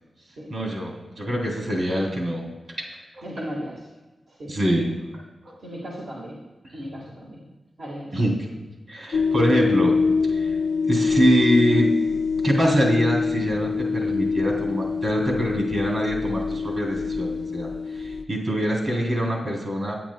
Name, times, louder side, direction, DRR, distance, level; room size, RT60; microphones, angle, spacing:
voice 1, 0.5-2.5 3.1-3.2 4.5-4.9 6.7-6.9 8.1-8.5 8.9-9.9 10.2-10.6 10.9-11.9 12.4-20.0, equal, 60° right, -1 dB, 2.9 m, -24 dB
voice 2, 3.2-3.8 4.4-4.5 5.6-6.4 6.7-7.4 7.8-8.2, equal, 80° right, -5 dB, 1.6 m, -35 dB
sound 1, 9.1-18.2, left 4 dB, 80° left, 0.3 m, -24 dB
10.0 x 9.5 x 2.2 m, 1.1 s
cardioid pair, 50°, 0 cm